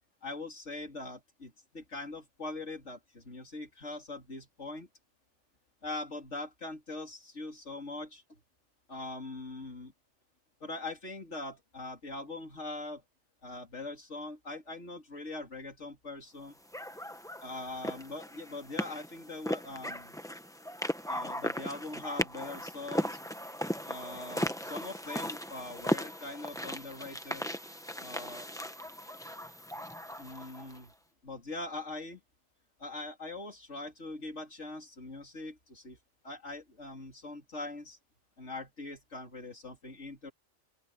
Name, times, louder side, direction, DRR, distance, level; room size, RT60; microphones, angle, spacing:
voice 1, 0.2-4.9 5.8-8.4 8.9-9.9 10.6-13.0 13.4-16.6 17.4-20.1 21.1-23.2 23.9-27.5 28.0-28.5 30.2-30.9 31.2-32.2 32.8-36.0 36.2-38.0 38.4-40.3, left 2 dB, 75° left, 3.7 m, -42 dB
sound 1, 16.7-30.8, equal, 5° left, 1.1 m, -37 dB
open air
omnidirectional pair, 1.2 m